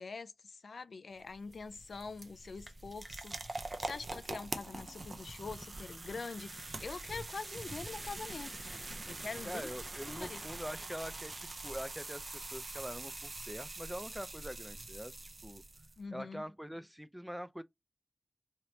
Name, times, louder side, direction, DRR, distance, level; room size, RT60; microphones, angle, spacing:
voice 1, 0.0-9.7 10.1-10.4 16.0-16.4, left 4 dB, 85° left, 0.4 m, -45 dB
sound 1, 1.1-16.0, right 2 dB, 55° right, 0.6 m, -44 dB
voice 2, 9.4-15.2 15.4-15.6 16.1-17.6, equal, 5° right, 0.4 m, -44 dB
3.3 x 2.8 x 2.7 m
wide cardioid pair, 60°, 0 cm